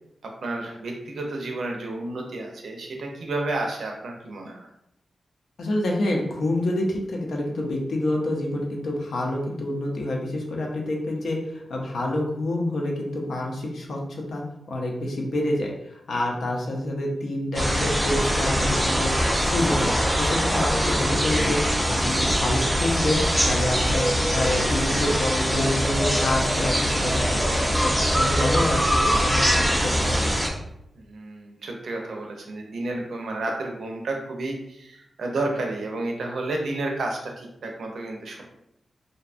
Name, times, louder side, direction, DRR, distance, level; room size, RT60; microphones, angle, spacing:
voice 1, 0.2-4.7 30.9-38.4, right 2 dB, 80° right, 1 dB, 0.5 m, -31 dB
voice 2, 5.6-14.4 14.7-15.7 16.1-19.1 19.4-23.2 23.4-27.4 27.8-30.3, left 1 dB, 80° left, 0 dB, 0.5 m, -27 dB
sound 1, 17.5-30.5, equal, 5° right, 0.3 m, -23 dB
2.6 x 2.2 x 2.4 m, 0.80 s
wide cardioid pair, 125°, 0 cm